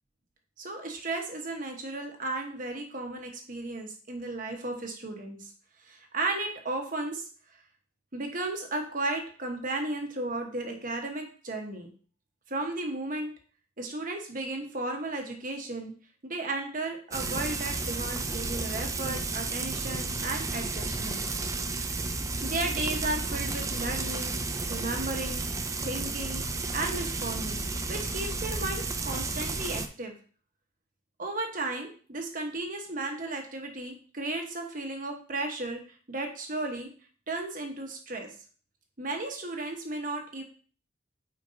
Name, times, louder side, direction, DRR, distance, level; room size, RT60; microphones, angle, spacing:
voice 1, 0.6-5.5 5.8-7.3 8.1-11.9 12.5-13.3 13.8-15.9 16.2-21.2 22.4-26.4 26.7-27.6 27.9-30.1 31.2-35.8 36.1-36.9 37.3-38.3 39.0-40.4, right 2 dB, 45° right, 2 dB, 1.3 m, -34 dB
Frying (food), 17.1-29.9, right 3 dB, 15° right, 0.4 m, -32 dB
9.4 x 4.5 x 2.8 m, 0.41 s
head